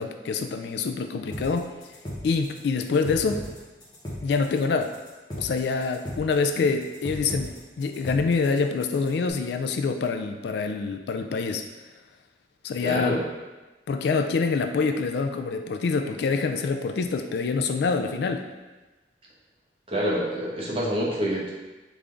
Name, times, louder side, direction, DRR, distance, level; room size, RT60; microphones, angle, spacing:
voice 1, 0.0-1.7 2.2-3.4 4.2-4.9 5.4-11.6 12.6-13.2 13.9-18.4, left 4 dB, 65° left, 6 dB, 0.3 m, -26 dB
sound 1, 1.3-9.3, left 1 dB, 25° left, 0.9 m, -37 dB
voice 2, 12.8-13.3 19.9-21.5, equal, 30° right, -5 dB, 0.9 m, -27 dB
3.6 x 3.3 x 3.8 m, 1.2 s
head